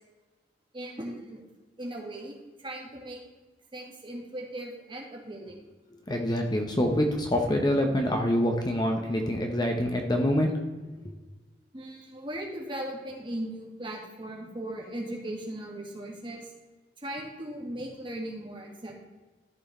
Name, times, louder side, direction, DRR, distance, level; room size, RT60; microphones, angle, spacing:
voice 1, 0.7-1.4 1.8-3.2 3.7-5.6 11.7-16.5 17.0-18.9, right 1 dB, 30° right, -1 dB, 2.0 m, -38 dB
voice 2, 6.1-10.5, left 1 dB, 25° left, 3 dB, 0.9 m, -26 dB
13.5 x 4.5 x 4.3 m, 1.2 s
head